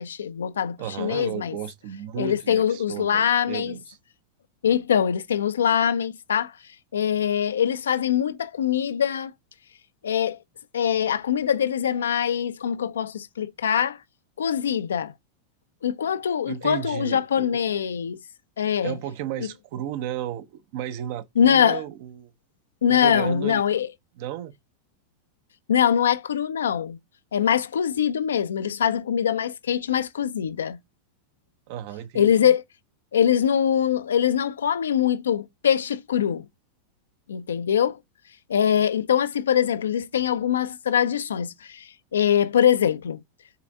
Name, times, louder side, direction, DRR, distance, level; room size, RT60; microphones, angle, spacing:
voice 1, 0.0-1.6 2.2-3.7 4.6-6.5 6.9-9.3 10.0-10.4 10.7-14.0 14.4-15.1 15.8-18.2 18.6-19.0 21.4-21.8 22.8-23.9 25.7-27.0 27.3-30.8 32.1-32.6 33.1-36.5 37.3-38.0 38.5-43.2, left 9 dB, 65° left, 0.5 m, -23 dB
voice 2, 0.8-4.0 16.4-17.6 18.8-22.3 22.9-23.6 24.2-24.5 31.7-32.5, right 11 dB, 50° right, 0.8 m, -34 dB
5.7 x 4.2 x 5.9 m
figure-of-eight pair, 90°, 0 cm